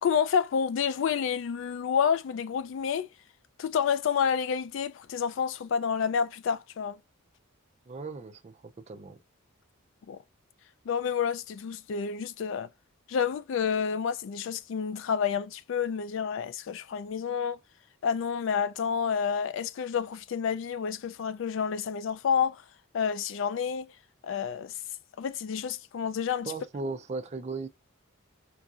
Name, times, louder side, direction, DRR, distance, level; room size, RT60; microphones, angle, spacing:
voice 1, 0.0-3.1 3.6-7.0 10.1-10.2 10.9-12.7 13.1-17.6 18.0-22.6 22.9-23.9 24.2-24.7 25.2-26.5, left 7 dB, 60° left, 0.3 m, -29 dB
voice 2, 7.9-9.2 26.5-27.7, right 3 dB, 30° right, 0.4 m, -37 dB
4.6 x 2.6 x 2.4 m
head